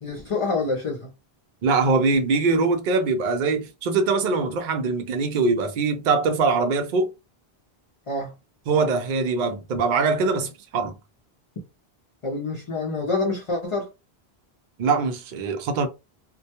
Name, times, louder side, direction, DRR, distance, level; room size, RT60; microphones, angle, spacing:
voice 1, 0.0-1.1 8.1-8.3 12.2-13.9, left 3 dB, 40° left, 0.5 m, -27 dB
voice 2, 1.6-7.1 8.7-11.0 14.8-15.9, right 4 dB, 60° right, 0.6 m, -22 dB
2.2 x 2.1 x 2.8 m
omnidirectional pair, 1.0 m